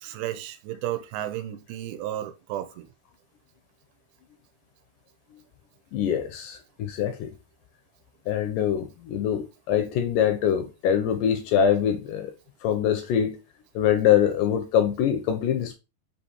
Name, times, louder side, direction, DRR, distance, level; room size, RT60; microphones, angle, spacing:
voice 1, 0.0-2.9, right 12 dB, 90° right, 2.4 m, -33 dB
voice 2, 5.9-7.3 8.3-12.3 12.6-13.4 13.8-15.8, left 9 dB, 85° left, 1.9 m, -24 dB
5.7 x 2.8 x 2.8 m
omnidirectional pair, 4.2 m